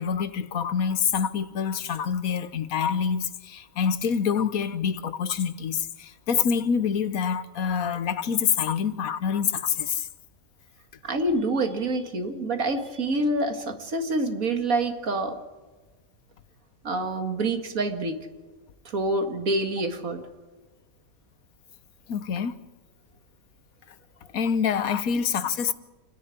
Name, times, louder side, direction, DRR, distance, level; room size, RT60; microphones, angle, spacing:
voice 1, 0.0-10.1 22.1-22.5 24.3-25.7, left 7 dB, 80° left, 1.4 m, -26 dB
voice 2, 11.0-15.4 16.8-18.2 18.9-20.2, right 2 dB, 75° right, 2.3 m, -27 dB
28.0 x 10.5 x 10.0 m
omnidirectional pair, 1.5 m